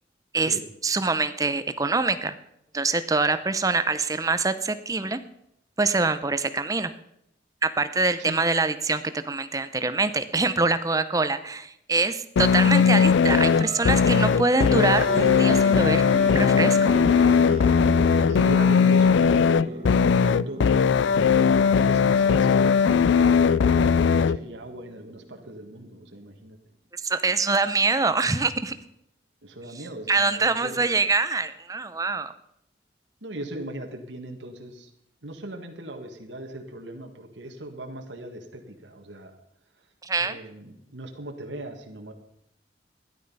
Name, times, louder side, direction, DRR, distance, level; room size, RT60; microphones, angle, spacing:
voice 1, 0.8-2.4 2.7-5.2 5.8-6.9 7.6-16.0 16.3-16.9 27.0-28.7 30.1-32.3 40.0-40.4, right 3 dB, 20° right, 12 dB, 0.7 m, -24 dB
sound 1, 12.4-24.4, left 6 dB, 85° left, 0.4 m, -19 dB
voice 2, 12.6-13.0 18.3-21.1 21.4-21.5 21.7-26.6 29.4-30.8 33.2-34.9 35.2-39.3 40.2-42.1, right 1 dB, 90° right, 3 dB, 1.7 m, -38 dB
sound 2, 13.2-25.7, equal, 35° right, 1.3 m, -37 dB
13.0 x 11.0 x 5.5 m, 0.77 s
head